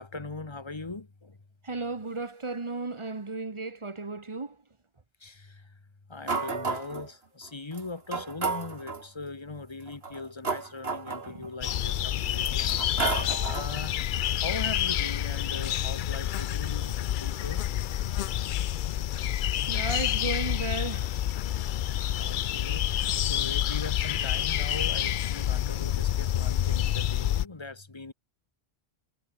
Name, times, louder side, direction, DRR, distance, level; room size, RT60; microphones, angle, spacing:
voice 1, 0.0-1.4 5.2-5.7 6.1-17.7 22.0-28.1, left 3 dB, 25° left, 1.3 m, -40 dB
voice 2, 1.6-4.6 11.3-11.5 19.7-21.2, right 3 dB, 30° right, 1.3 m, -34 dB
sound 1, 6.3-7.1 7.7-7.8 8.1-9.1 9.9-11.7 12.3-13.8, right 4 dB, 70° right, 2.2 m, -32 dB
sound 2, 11.6-27.5, left 11 dB, 60° left, 0.6 m, -28 dB
omnidirectional pair, 1.1 m